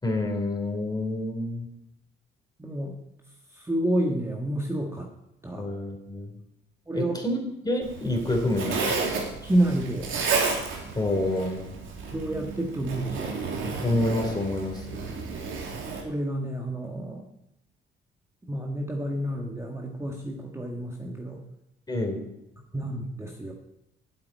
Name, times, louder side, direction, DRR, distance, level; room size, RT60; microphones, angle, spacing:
voice 1, 0.0-1.7 5.5-6.3 6.9-7.4 7.6-9.0 10.9-11.8 13.8-15.0 21.9-22.3, left 1 dB, 20° left, 2 dB, 3.6 m, -28 dB
voice 2, 2.6-3.0 3.5-5.1 5.4-5.7 6.9-7.1 9.4-10.1 12.1-13.4 16.0-17.3 18.5-21.4 22.7-23.5, right 1 dB, 15° right, 0 dB, 1.6 m, -29 dB
Zipper (clothing), 7.8-16.0, right 4 dB, 80° right, 2.8 m, -32 dB
8.6 x 8.3 x 9.3 m, 0.86 s
cardioid pair, 90°, 20 cm